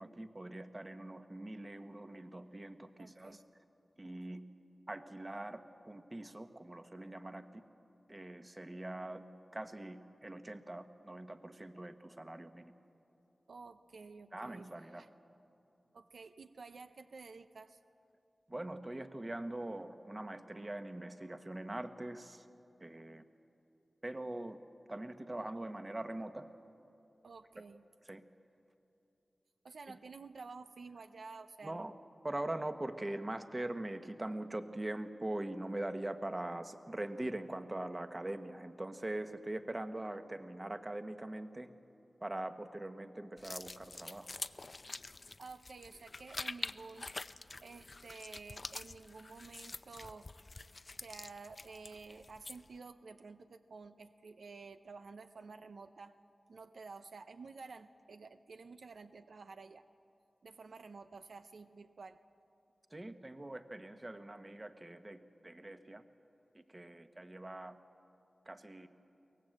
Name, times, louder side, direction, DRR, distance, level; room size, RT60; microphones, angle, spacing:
voice 1, 0.0-3.4 4.0-4.4 4.9-7.6 8.1-9.2 9.5-12.7 14.3-15.0 18.5-22.5 22.8-23.2 24.0-24.6 24.9-26.5 28.0-28.2 29.9-30.0 31.6-32.0 32.2-41.7 42.2-44.3 62.9-66.0 66.5-67.8 68.4-68.9, right 1 dB, 30° right, 8 dB, 1.3 m, -42 dB
voice 2, 3.0-3.4 13.5-14.7 14.9-15.1 15.9-17.8 27.2-27.8 29.6-31.9 45.4-47.1 47.6-50.3 51.0-56.2 56.5-59.8 60.4-62.2, right 4 dB, 85° right, 9 dB, 0.6 m, -51 dB
sound 1, 43.4-52.8, left 3 dB, 50° left, 0.5 m, -46 dB
23.5 x 18.0 x 7.9 m, 2.8 s
cardioid pair, 45°, 0 cm